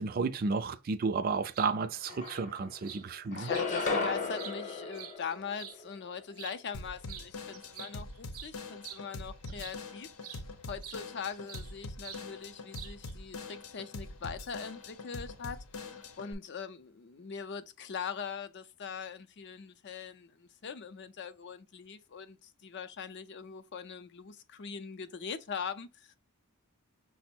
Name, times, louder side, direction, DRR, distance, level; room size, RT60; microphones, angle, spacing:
voice 1, 0.0-3.5, right 4 dB, 40° right, 0.4 m, -32 dB
sound 1, 1.5-1.7 2.2-2.4 2.8-3.0 3.5-3.7 4.1-5.8 6.3-6.6 7.1-7.3 7.5-9.9 10.2-10.4 10.8-11.7 12.0-12.2 12.7-13.1, right 10 dB, 80° right, 0.6 m, -47 dB
sound 2, 1.7-1.8 2.1-2.9 3.3-5.9, left 4 dB, 35° left, 0.8 m, -34 dB
voice 2, 3.3-26.1, left 6 dB, 55° left, 0.5 m, -42 dB
Drum kit / Drum, 6.7-16.3, left 3 dB, 85° left, 0.8 m, -44 dB
6.0 x 2.0 x 4.3 m
head